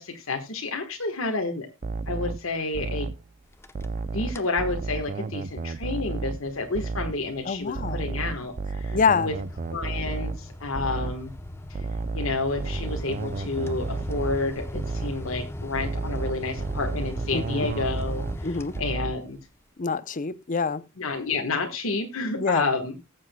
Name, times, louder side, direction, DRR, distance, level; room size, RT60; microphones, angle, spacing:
voice 1, 0.0-1.7 2.1-3.1 4.1-9.3 9.7-11.3 11.7-11.9 12.1-18.5 18.8-19.4 21.0-23.0, left 3 dB, 80° left, 1.4 m, -30 dB
sound 1, 1.8-3.3 3.8-6.5 6.8-7.3 7.8-11.3 11.8-14.5 14.8-15.3 15.7-18.5 18.7-19.3, right 3 dB, 40° right, 0.4 m, -32 dB
sound 2, 3.5-4.0 4.3-4.6 5.1-19.4, left 1 dB, 10° left, 0.8 m, -39 dB
voice 2, 7.4-8.0 8.9-9.3 17.3-17.7 18.4-18.7 19.8-20.8 22.4-22.7, left 5 dB, 40° left, 0.6 m, -25 dB
20.0 x 7.5 x 2.2 m
head